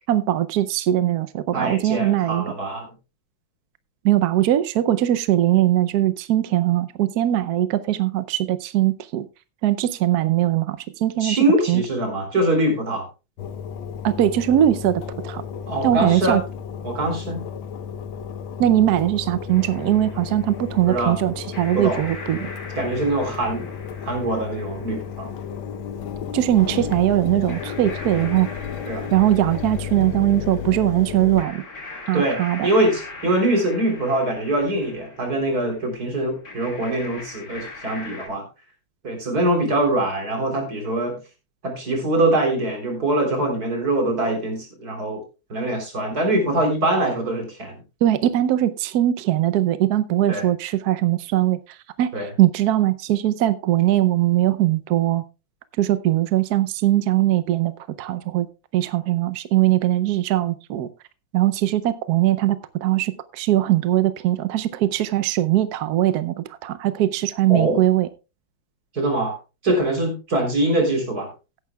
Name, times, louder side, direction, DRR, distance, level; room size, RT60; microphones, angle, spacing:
voice 1, 0.1-2.4 4.0-9.3 9.6-11.4 11.7-11.8 14.0-15.4 15.8-16.4 18.6-22.5 26.3-28.6 29.1-31.6 32.1-32.7 48.0-55.2 55.8-58.5 58.7-60.9 61.3-68.1, right 13 dB, 75° right, 13 dB, 0.9 m, -21 dB
voice 2, 1.5-2.9 11.2-13.0 15.7-16.4 16.8-17.4 20.9-21.1 21.7-22.0 22.8-23.6 24.0-25.3 28.9-29.1 32.1-38.4 39.0-41.2 41.6-45.2 45.5-47.7 50.3-50.5 52.1-52.3 67.5-67.8 68.9-69.4 69.6-71.3, right 1 dB, 45° right, 3 dB, 3.9 m, -23 dB
Engine, 13.4-31.4, left 7 dB, 75° left, 1.6 m, -33 dB
sound 1, 19.5-38.3, left 3 dB, 45° left, 2.9 m, -41 dB
17.0 x 9.5 x 2.2 m, 0.29 s
omnidirectional pair, 2.3 m